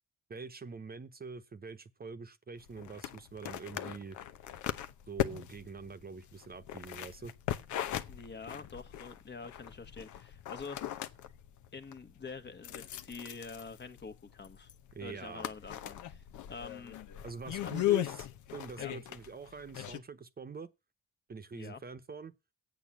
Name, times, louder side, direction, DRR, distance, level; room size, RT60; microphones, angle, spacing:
voice 1, 0.3-4.2 5.1-7.3 14.9-15.5 17.2-18.3 18.5-20.7 21.3-22.3, right 4 dB, 30° right, 1.0 m, -45 dB
sound 1, 2.6-20.0, left 13 dB, 80° left, 0.9 m, -39 dB
voice 2, 8.1-10.9 11.7-14.7 15.0-16.2 16.5-17.0 17.4-18.0 18.8-18.9 21.5-21.8, left 4 dB, 35° left, 1.4 m, -46 dB
8.4 x 6.7 x 7.4 m
cardioid pair, 90°, 30 cm